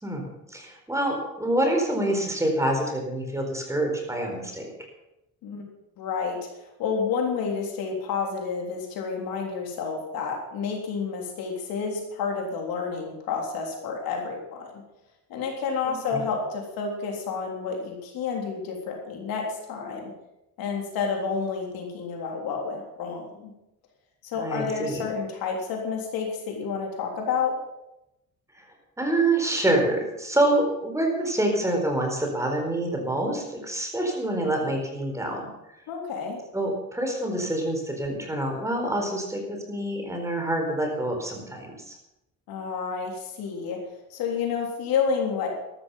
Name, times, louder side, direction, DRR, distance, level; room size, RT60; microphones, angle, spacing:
voice 1, 0.0-4.7 15.8-16.2 24.4-25.0 29.0-35.5 36.5-41.9, right 1 dB, 10° right, 2 dB, 4.3 m, -26 dB
voice 2, 6.0-6.4 6.8-14.8 15.3-20.1 20.6-23.5 24.2-27.6 35.9-36.4 42.5-43.8 44.1-45.5, left 5 dB, 90° left, 1 dB, 3.5 m, -30 dB
13.0 x 13.0 x 5.6 m, 0.89 s
cardioid pair, 115°, 34 cm